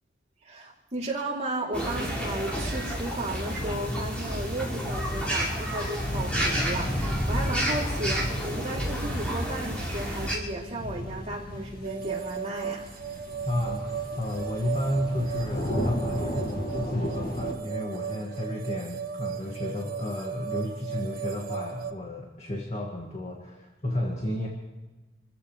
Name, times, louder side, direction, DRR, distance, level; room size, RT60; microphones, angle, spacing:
voice 1, 0.4-12.9, right 1 dB, 35° right, -3 dB, 3.3 m, -34 dB
sound 1, 1.7-10.4, equal, 5° left, 5.6 m, -30 dB
sound 2, 6.0-17.5, equal, 50° left, 2.2 m, -34 dB
sound 3, 11.8-21.9, right 8 dB, 50° right, 1.1 m, -36 dB
voice 2, 13.5-24.5, left 1 dB, 35° left, -1 dB, 2.2 m, -32 dB
28.5 x 14.5 x 3.4 m, 1.2 s
head